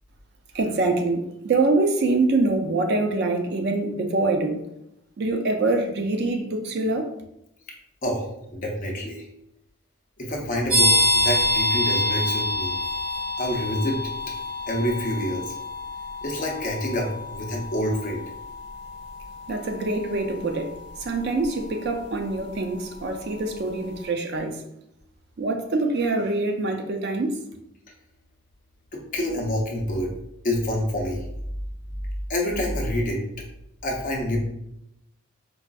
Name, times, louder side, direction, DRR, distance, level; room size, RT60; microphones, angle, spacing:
voice 1, 0.5-4.7 5.2-7.1 19.5-20.7 21.0-24.6 25.4-27.4, right 2 dB, 50° right, 4 dB, 0.4 m, -24 dB
voice 2, 8.0-9.3 10.2-12.8 13.4-14.0 14.7-15.6 16.2-18.2 28.9-30.1 30.4-31.3 32.3-33.2 33.8-34.4, left 1 dB, 40° left, 0 dB, 0.6 m, -27 dB
sound 1, 10.7-23.2, left 1 dB, 30° right, 1.0 m, -27 dB
4.6 x 2.5 x 2.3 m, 0.81 s
head